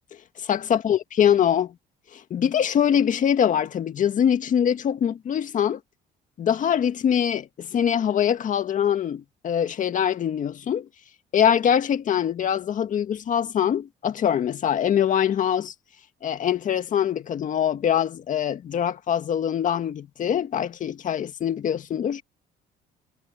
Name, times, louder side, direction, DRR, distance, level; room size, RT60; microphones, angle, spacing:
voice 1, 0.4-1.7 2.1-5.8 6.4-10.9 11.3-15.7 16.2-22.2, left 9 dB, 50° left, 1.9 m, -23 dB
cardioid pair, 110°, 17 cm